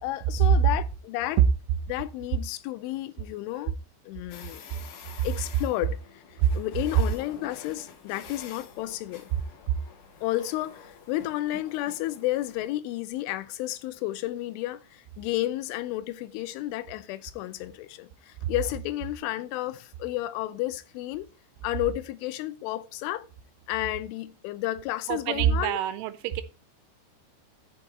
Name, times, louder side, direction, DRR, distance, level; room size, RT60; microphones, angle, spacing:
voice 1, 0.0-1.4 1.9-3.7 4.1-4.6 5.2-6.2 6.5-9.3 10.2-21.3 21.6-23.2 23.7-25.8, left 15 dB, 90° left, 3.2 m, -32 dB
sound 1, 4.3-12.7, left 7 dB, 65° left, 2.0 m, -48 dB
voice 2, 25.1-26.4, right 10 dB, 90° right, 3.4 m, -24 dB
13.5 x 5.4 x 4.2 m
omnidirectional pair, 5.5 m